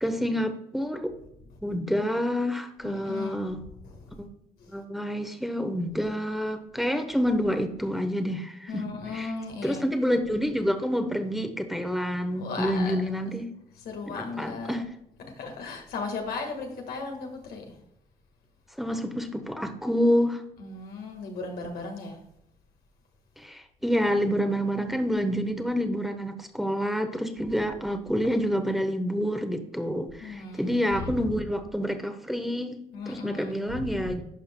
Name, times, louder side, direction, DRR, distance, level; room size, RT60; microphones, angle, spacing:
voice 1, 0.0-1.1 1.6-3.6 4.2-4.3 4.7-8.8 9.1-9.3 9.6-13.5 14.1-14.8 18.8-20.4 23.4-32.8 33.1-34.2, equal, ahead, 6 dB, 1.0 m, -28 dB
voice 2, 2.8-3.4 3.8-4.2 4.6-4.7 8.7-9.8 12.3-13.3 13.8-14.8 15.4-17.6 20.6-22.1 30.2-31.2 32.9-34.1, left 4 dB, 75° left, 2 dB, 1.6 m, -36 dB
11.0 x 5.5 x 2.2 m, 0.80 s
supercardioid pair, 55°, 16 cm